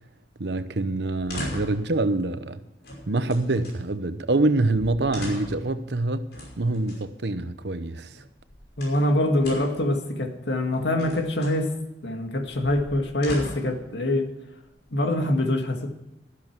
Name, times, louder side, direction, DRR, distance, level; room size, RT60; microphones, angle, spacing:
voice 1, 0.4-2.6 3.1-6.3 6.6-8.1, right 2 dB, 80° right, 0.9 m, -25 dB
sound 1, 1.1-1.9 2.8-3.8 4.4-4.5 4.7-5.7 6.3-7.0 8.2-9.1 9.4-9.9 10.7-11.6 12.4-13.8 14.6-15.3, left 1 dB, 70° left, 5.6 m, -38 dB
voice 2, 8.8-11.7 12.0-14.3 14.9-15.9, left 1 dB, 85° left, 2.0 m, -24 dB
13.0 x 12.0 x 4.6 m
head